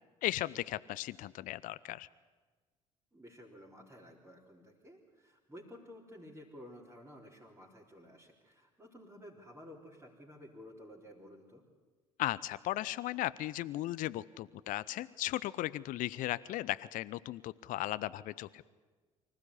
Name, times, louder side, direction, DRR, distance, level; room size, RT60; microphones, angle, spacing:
voice 1, 0.2-2.1 12.2-18.7, left 15 dB, 50° left, 17 dB, 0.6 m, -36 dB
voice 2, 3.1-11.7, equal, 15° right, -5 dB, 4.0 m, -53 dB
25.0 x 15.5 x 9.8 m, 1.3 s
figure-of-eight pair, 55°, 18 cm